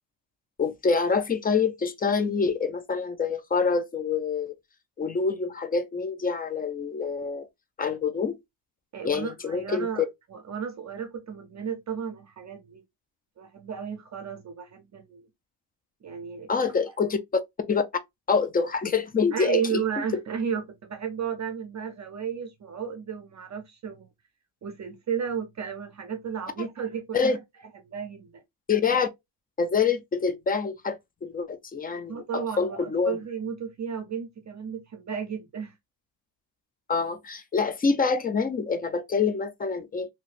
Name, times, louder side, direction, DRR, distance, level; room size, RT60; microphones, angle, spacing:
voice 1, 0.6-4.5 5.0-7.5 7.8-8.4 9.0-10.1 16.5-17.2 17.7-17.8 18.3-19.8 27.1-27.4 28.7-29.1 29.6-31.0 31.2-33.2 36.9-40.1, left 5 dB, 20° left, 0.4 m, -26 dB
voice 2, 8.9-12.8 13.4-15.3 16.0-16.5 19.3-24.1 24.6-27.4 27.9-28.4 32.1-35.7, right 7 dB, 40° right, 0.6 m, -33 dB
3.1 x 2.7 x 2.4 m
cardioid pair, 120°, 45 cm